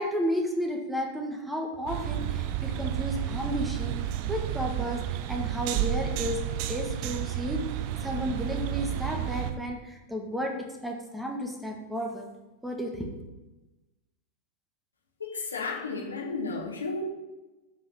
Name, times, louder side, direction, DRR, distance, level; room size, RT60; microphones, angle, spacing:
voice 1, 0.0-4.0 4.3-6.4 6.7-7.6 8.0-12.2 12.6-13.1, equal, 5° right, 1 dB, 1.6 m, -32 dB
sound 1, 1.9-9.5, right 12 dB, 45° right, 0.9 m, -31 dB
voice 2, 15.2-17.0, left 4 dB, 75° left, -1 dB, 2.0 m, -33 dB
8.0 x 5.6 x 7.4 m, 1.1 s
figure-of-eight pair, 90°, 0 cm